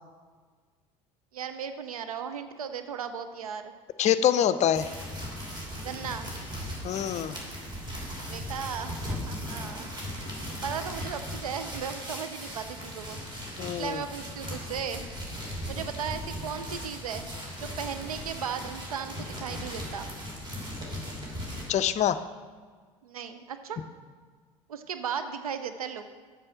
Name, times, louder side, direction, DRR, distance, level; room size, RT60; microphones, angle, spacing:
voice 1, 1.3-3.7 5.8-6.3 8.3-9.9 10.6-13.2 13.8-15.1 15.7-17.3 17.6-20.1 23.0-23.8 24.7-26.0, right 7 dB, 85° right, 9 dB, 0.5 m, -36 dB
voice 2, 4.0-4.9 6.8-7.4 13.6-14.0 21.7-22.2, left 10 dB, 40° left, 13 dB, 0.5 m, -25 dB
sound 1, 4.7-21.6, equal, 25° right, 3.2 m, -38 dB
7.7 x 6.8 x 5.8 m, 1.5 s
hypercardioid pair, 65°, 18 cm